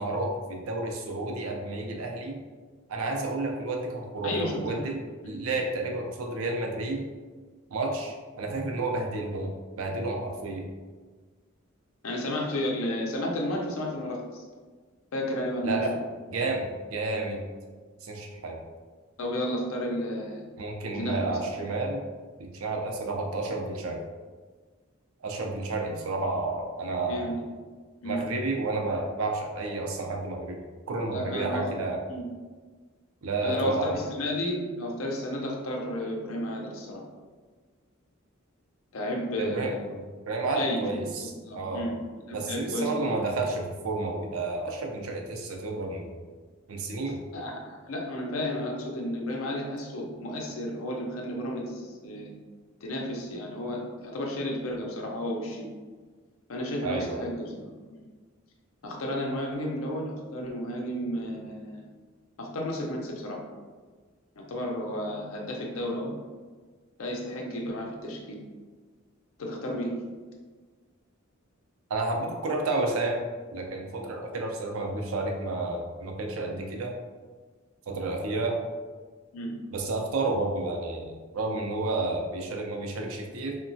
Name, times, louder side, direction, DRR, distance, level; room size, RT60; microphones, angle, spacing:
voice 1, 0.0-2.4 2.9-5.0 5.2-7.0 7.7-10.6 15.6-15.9 16.3-17.4 18.0-18.6 20.6-22.0 22.4-24.0 25.2-27.3 28.0-30.6 30.9-32.0 33.2-34.0 39.4-40.0 40.3-41.9 42.3-46.2 46.7-47.2 56.8-57.2 71.9-76.9 77.9-78.6 79.7-83.6, right 2 dB, 85° right, 1 dB, 0.5 m, -31 dB
voice 2, 4.2-4.9 5.2-5.3 12.0-14.5 15.1-15.8 19.2-20.4 20.9-21.4 27.0-27.3 28.0-28.2 31.1-31.6 32.1-32.2 33.4-37.0 38.9-39.8 40.5-41.0 41.4-41.9 42.3-43.1 47.3-52.3 52.8-55.7 56.5-57.6 58.8-61.8 62.4-63.4 64.4-66.1 67.0-68.4 69.4-70.0 79.3-79.5, left 1 dB, 80° left, 0 dB, 0.5 m, -32 dB
3.0 x 2.1 x 2.6 m, 1.4 s
head